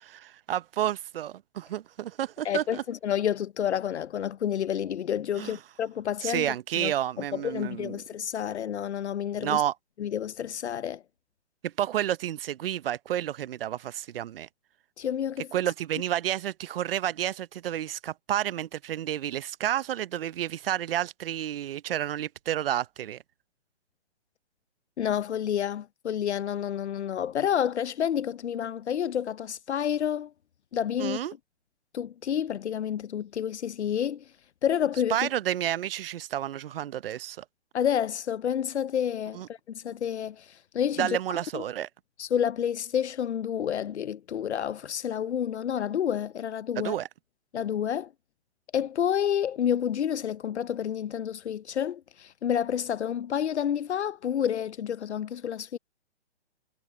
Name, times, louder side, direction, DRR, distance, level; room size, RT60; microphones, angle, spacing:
voice 1, 0.0-2.8 5.4-5.6 6.2-8.0 9.4-9.7 11.6-14.5 15.5-23.2 31.0-31.3 35.1-37.4 39.3-39.5 41.0-41.9 46.8-47.1, right 11 dB, 55° right, 0.8 m, -30 dB
voice 2, 2.4-6.9 7.3-9.6 10.0-11.0 15.0-15.5 25.0-30.3 30.7-31.2 31.9-34.3 34.6-35.3 37.7-41.2 41.5-41.6 42.2-47.0 47.5-48.1 48.7-55.8, left 9 dB, 80° left, 0.7 m, -29 dB
hypercardioid pair, 135°, 33 cm